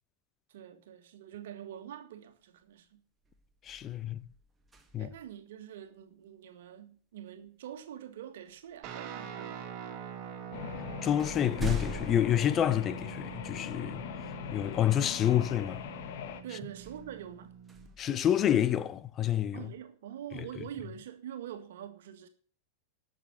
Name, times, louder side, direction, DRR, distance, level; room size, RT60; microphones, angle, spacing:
voice 1, 0.5-3.0 5.0-9.7 16.4-17.5 19.5-22.3, right 10 dB, 55° right, 1.8 m, -45 dB
sound 1, 2.6-2.9 3.2-5.3 7.5-7.6 8.5-9.2 10.1-10.2 10.6-13.4 14.0-14.1 16.7-18.9, equal, 10° right, 2.0 m, -43 dB
voice 2, 3.6-4.2 4.9-5.1 11.0-14.0 14.5-15.8 18.0-19.7 20.3-20.4, left 10 dB, 30° left, 0.6 m, -28 dB
Guitar, 8.8-17.9, right 7 dB, 40° right, 2.3 m, -44 dB
sound 2, 10.5-16.4, left 9 dB, 50° left, 1.3 m, -42 dB
12.0 x 6.7 x 7.5 m
figure-of-eight pair, 90°, 0 cm